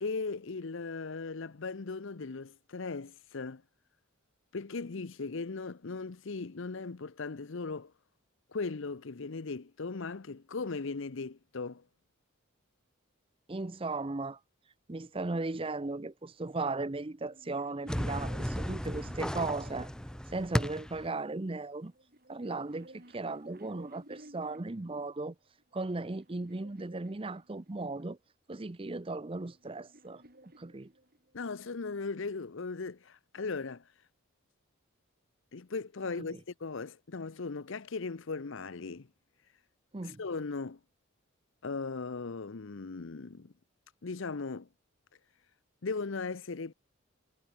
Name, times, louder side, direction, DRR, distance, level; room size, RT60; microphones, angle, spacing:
voice 1, 0.0-3.6 4.5-7.9 8.5-11.8 31.3-33.8 35.5-39.1 40.0-40.8 41.6-43.5 44.0-44.7 45.8-46.7, left 4 dB, 60° left, 0.7 m, -38 dB
voice 2, 13.5-14.4 14.9-19.9 20.3-21.9 22.3-25.3 25.7-28.2 28.5-30.2 30.6-30.9 36.2-36.4 39.9-40.2, right 3 dB, 25° right, 0.6 m, -36 dB
sound 1, 17.2-20.6 21.5-24.9 25.6-28.0 29.0-31.5, right 1 dB, 45° right, 5.8 m, -55 dB
sound 2, 17.9-21.1, equal, 5° left, 1.0 m, -35 dB
head